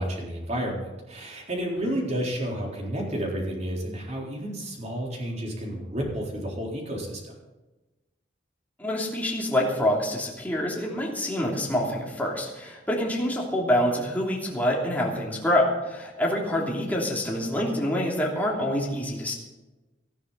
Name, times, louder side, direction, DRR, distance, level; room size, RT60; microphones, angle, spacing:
voice 1, 0.0-7.3, equal, 40° right, -1 dB, 4.0 m, -31 dB
voice 2, 8.8-19.3, left 1 dB, 10° left, -3 dB, 3.0 m, -26 dB
18.5 x 13.0 x 4.1 m, 1.1 s
head